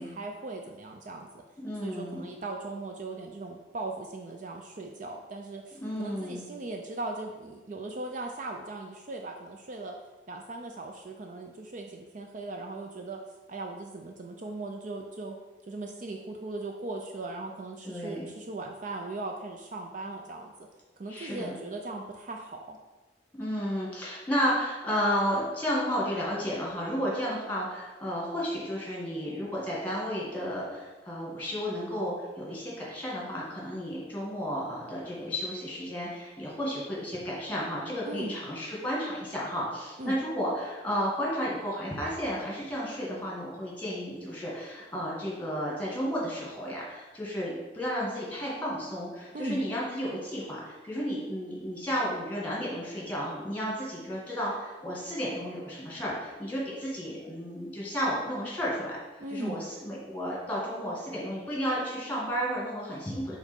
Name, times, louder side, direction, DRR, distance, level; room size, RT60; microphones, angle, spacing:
voice 1, 0.0-1.4 1.8-10.0 10.3-13.2 13.5-15.4 15.7-20.5 21.0-22.8 38.1-38.3 40.0-40.1 49.3-49.6 59.2-59.7, right 2 dB, 45° right, 2 dB, 0.4 m, -38 dB
voice 2, 1.6-2.2 5.8-6.4 17.8-18.3 21.1-21.5 23.4-63.4, equal, 10° left, -5 dB, 1.9 m, -32 dB
5.1 x 3.9 x 5.2 m, 1.2 s
head